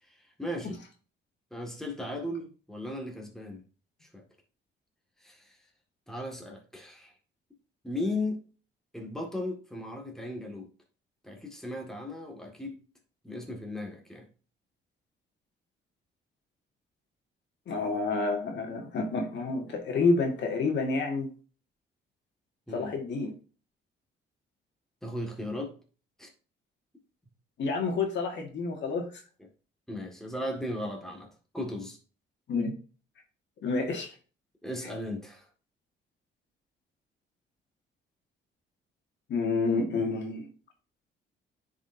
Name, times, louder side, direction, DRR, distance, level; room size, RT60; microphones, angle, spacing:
voice 1, 0.0-0.8 1.5-3.6 4.0-4.2 5.2-5.6 6.1-7.1 7.8-8.4 8.9-10.7 11.2-12.8 13.2-14.3 22.7-22.9 25.0-25.8 26.2-26.3 29.9-31.3 31.5-32.0 34.6-35.5, left 1 dB, ahead, 1.9 m, -36 dB
voice 2, 17.7-21.3 22.7-23.3 27.6-29.1 32.5-32.7 33.6-34.1 39.3-40.5, left 3 dB, 65° left, 1.9 m, -29 dB
9.9 x 4.9 x 2.7 m
cardioid pair, 90°, 20 cm